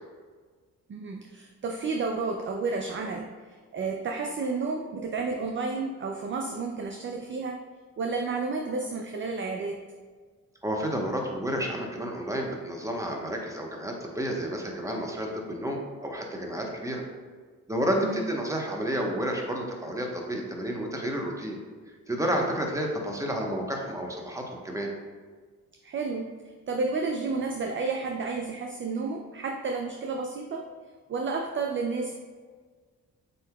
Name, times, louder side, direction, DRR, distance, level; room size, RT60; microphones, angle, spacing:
voice 1, 0.9-3.3 3.7-7.6 8.0-9.8 18.0-18.2 25.8-26.3 26.7-30.7 31.1-32.1, right 4 dB, 35° right, 3 dB, 0.4 m, -31 dB
voice 2, 10.6-17.0 17.7-21.6 22.1-24.9, equal, 10° right, 0 dB, 1.0 m, -30 dB
7.4 x 2.8 x 2.3 m, 1.5 s
supercardioid pair, 50°, 38 cm